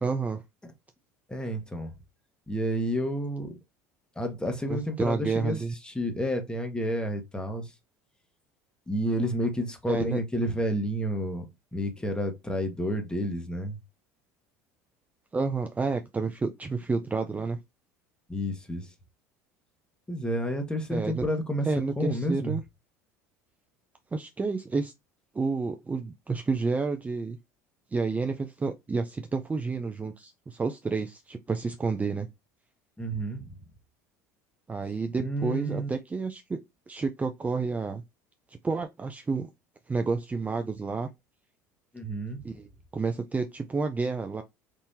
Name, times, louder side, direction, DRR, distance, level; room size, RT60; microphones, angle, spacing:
voice 1, 0.0-0.4 4.7-5.7 9.9-10.2 15.3-17.6 20.9-21.2 21.6-22.6 24.1-24.9 25.3-27.4 27.9-32.3 34.7-36.6 36.9-38.0 38.5-39.5 39.9-41.1 42.4-44.4, right 4 dB, 15° right, 0.4 m, -30 dB
voice 2, 1.3-1.9 2.5-3.5 4.2-5.6 5.8-7.7 8.9-11.5 11.7-13.8 18.3-18.9 20.1-21.7 22.0-22.6 33.0-33.5 35.2-35.9 41.9-42.4, equal, 10° left, 1.2 m, -30 dB
3.6 x 2.7 x 2.7 m
hypercardioid pair, 75°, 9 cm